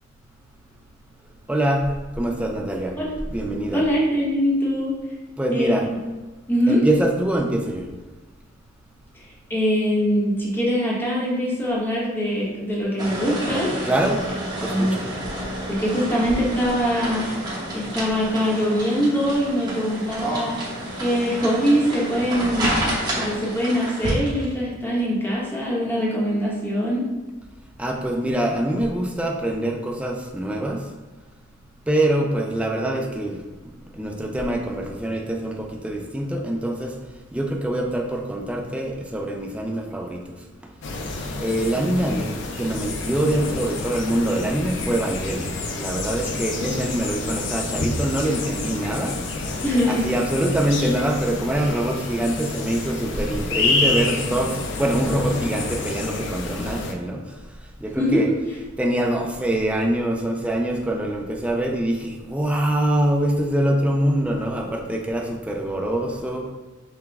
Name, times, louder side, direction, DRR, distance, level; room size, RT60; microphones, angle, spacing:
voice 1, 1.5-2.9 3.3-3.8 5.4-5.9 6.7-7.9 13.9-14.2 14.6-15.0 27.8-30.8 31.9-33.4 33.9-36.9 37.3-40.2 41.4-45.5 45.8-49.2 49.9-57.2 57.8-58.3 58.8-66.5, right 1 dB, 5° right, 1 dB, 0.3 m, -24 dB
voice 2, 3.7-5.0 5.5-5.8 6.5-6.8 9.5-13.9 14.7-15.0 15.7-17.4 17.7-20.6 21.0-27.1 49.6-50.1 58.0-58.2, equal, 10° left, -5 dB, 0.9 m, -23 dB
sound 1, 13.0-24.5, right 1 dB, 20° right, 1.0 m, -30 dB
sound 2, 40.8-56.9, left 3 dB, 60° left, 0.5 m, -28 dB
5.9 x 2.2 x 3.4 m, 1.2 s
head